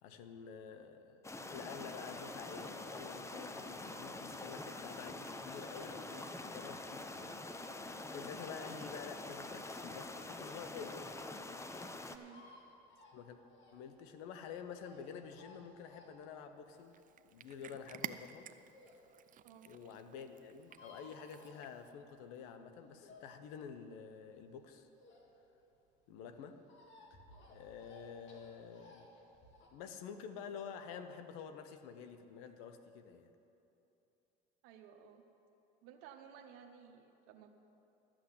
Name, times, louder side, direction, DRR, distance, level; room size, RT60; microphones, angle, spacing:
voice 1, 0.0-7.8 8.1-11.1 13.1-13.4 13.7-18.5 19.7-24.9 26.1-26.6 27.1-27.2 27.5-29.1 29.7-33.3, left 7 dB, 85° left, 8 dB, 0.8 m, -49 dB
sound 1, 1.2-12.2, left 2 dB, 15° left, 0.7 m, -46 dB
voice 2, 12.1-12.5 19.4-19.7 34.6-35.2 35.8-37.5, right 8 dB, 85° right, 4 dB, 0.8 m, -56 dB
sound 2, 12.2-19.1 19.5-19.6 19.8-19.9 20.1-20.2 20.4-22.3 22.6-25.6 25.9-29.7, left 2 dB, 65° left, 2.1 m, -60 dB
Cat, 16.7-21.9, right 10 dB, 40° right, 0.4 m, -51 dB
13.0 x 6.2 x 8.2 m, 2.9 s
supercardioid pair, 85°, 21 cm